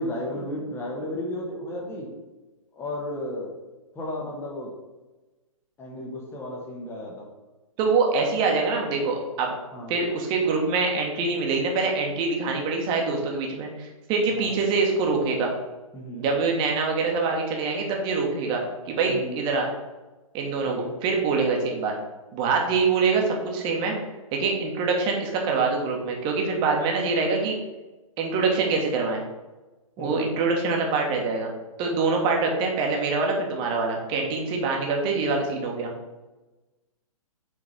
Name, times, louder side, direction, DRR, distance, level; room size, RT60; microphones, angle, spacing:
voice 1, 0.0-2.1 2.7-3.5 3.9-4.7 5.8-7.2 9.7-9.9 14.3-14.5 15.9-16.3 19.1-19.4 20.7-20.9 30.0-30.4, left 1 dB, 15° left, -2 dB, 1.2 m, -33 dB
voice 2, 7.8-9.5 9.9-15.5 16.2-19.7 20.3-21.9 22.3-23.9 24.3-27.5 28.2-29.2 30.0-31.5 31.8-35.9, right 4 dB, 25° right, 1 dB, 1.3 m, -25 dB
6.3 x 3.9 x 4.1 m, 1.1 s
hypercardioid pair, 130°, 18 cm